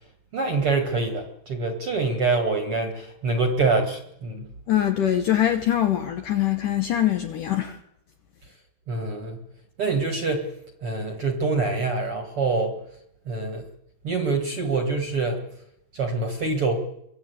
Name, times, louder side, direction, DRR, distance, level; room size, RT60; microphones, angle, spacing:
voice 1, 0.3-4.5 8.9-9.4 9.8-10.5 10.8-12.7 13.3-13.7 14.0-15.4 15.9-16.8, right 3 dB, 45° right, 2.1 m, -25 dB
voice 2, 4.7-7.8, left 11 dB, 70° left, 2.1 m, -23 dB
24.5 x 16.5 x 8.2 m
omnidirectional pair, 4.9 m